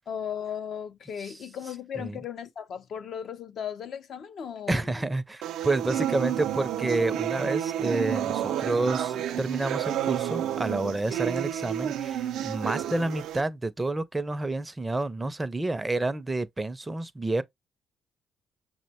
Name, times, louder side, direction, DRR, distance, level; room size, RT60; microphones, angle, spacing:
voice 1, 0.1-5.1, left 8 dB, 65° left, 0.5 m, -36 dB
voice 2, 4.7-17.4, right 2 dB, 20° right, 0.5 m, -29 dB
sound 1, 5.4-13.4, right 10 dB, 80° right, 0.4 m, -30 dB
5.9 x 2.1 x 2.8 m
cardioid pair, 90°, 0 cm